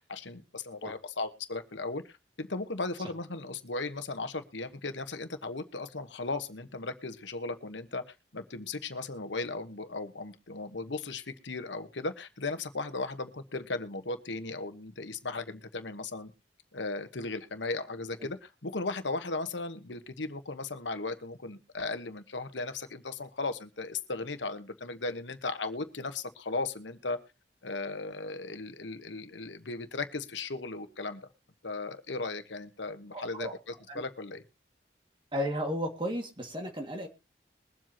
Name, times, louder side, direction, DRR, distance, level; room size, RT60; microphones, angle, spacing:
voice 1, 0.0-16.3 16.7-18.4 18.6-27.2 27.6-31.2 31.6-33.5 33.9-34.4, left 3 dB, 85° left, 10 dB, 1.3 m, -36 dB
voice 2, 33.1-33.5 33.9-34.0 35.3-37.1, equal, 25° right, 3 dB, 2.1 m, -34 dB
22.5 x 7.7 x 2.9 m, 0.29 s
head